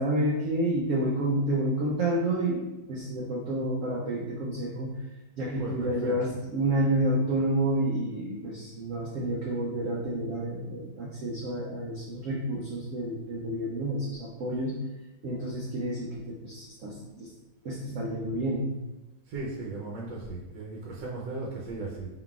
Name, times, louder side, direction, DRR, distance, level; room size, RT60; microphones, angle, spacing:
voice 1, 0.0-4.9 5.4-14.9 15.2-17.3 17.6-18.7, right 1 dB, 90° right, -3 dB, 0.7 m, -29 dB
voice 2, 5.6-6.1 19.3-22.1, right 3 dB, 70° right, -4 dB, 1.3 m, -37 dB
4.1 x 3.9 x 2.3 m, 1.0 s
omnidirectional pair, 2.1 m